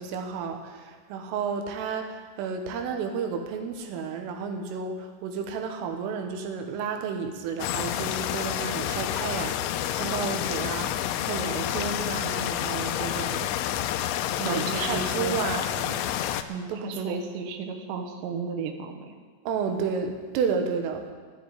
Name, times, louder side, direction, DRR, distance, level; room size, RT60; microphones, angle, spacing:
voice 1, 0.0-9.6 9.9-13.5 14.5-16.1 16.7-17.2 19.5-21.1, right 5 dB, 85° right, 4 dB, 3.8 m, -32 dB
sound 1, 7.6-16.4, left 11 dB, 80° left, 2.8 m, -29 dB
voice 2, 14.3-15.4 16.5-19.1, right 5 dB, 70° right, 4 dB, 3.1 m, -33 dB
13.0 x 8.1 x 9.9 m, 1.5 s
omnidirectional pair, 5.6 m